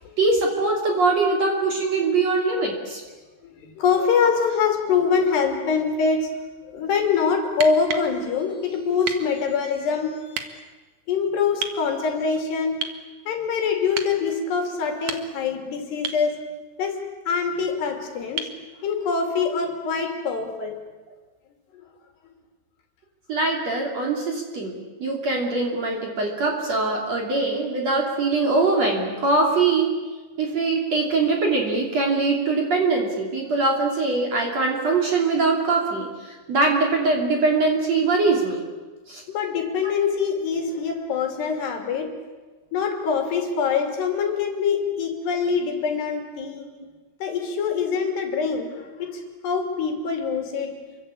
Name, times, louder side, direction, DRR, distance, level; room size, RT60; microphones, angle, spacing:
voice 1, 0.2-3.0 4.5-4.6 23.3-29.9 30.4-38.6 39.1-39.2, right 3 dB, 40° right, 0 dB, 3.7 m, -22 dB
voice 2, 3.6-6.3 6.7-10.2 10.5-10.6 11.1-12.8 13.3-16.4 16.8-17.0 17.3-20.8 39.3-42.1 42.7-46.7 47.2-50.7, left 5 dB, 60° left, 4 dB, 4.6 m, -24 dB
sound 1, 7.5-8.1 9.0-9.3 10.3-10.5 11.6-11.8 12.8-13.0 13.9-14.2 14.9-15.5 16.0-16.3 18.4-18.6 20.4-20.5, right 7 dB, 60° right, 1.7 m, -31 dB
28.5 x 23.5 x 8.5 m, 1.3 s
omnidirectional pair, 5.5 m